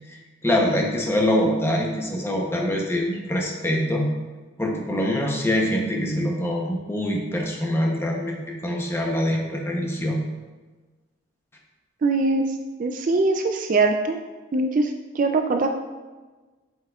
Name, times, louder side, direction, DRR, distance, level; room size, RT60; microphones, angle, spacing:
voice 1, 0.4-4.1 4.6-10.2, left 1 dB, 10° left, 0 dB, 0.7 m, -24 dB
voice 2, 12.0-12.4 12.8-14.2 14.5-15.7, right 3 dB, 40° right, 5 dB, 0.3 m, -22 dB
7.8 x 5.5 x 2.4 m, 1.3 s
head